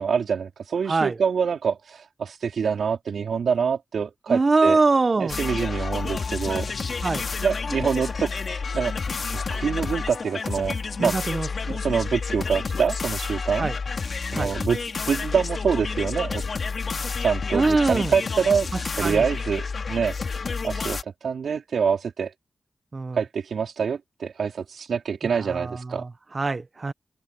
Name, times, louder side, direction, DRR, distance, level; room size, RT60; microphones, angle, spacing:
voice 1, 0.0-4.8 5.2-6.7 7.4-8.9 9.3-11.2 11.7-13.7 14.3-16.4 17.2-20.2 20.6-22.3 23.1-26.1, right 6 dB, 90° right, 3.9 m, -26 dB
voice 2, 4.3-5.3 7.0-7.2 11.0-11.5 13.6-13.7 14.3-14.5 17.5-18.1 18.7-19.2 22.9-23.2 25.5-26.9, right 3 dB, 40° right, 0.9 m, -23 dB
sound 1, 5.3-21.0, left 4 dB, 60° left, 3.5 m, -30 dB
open air
wide cardioid pair, 85°, 0 cm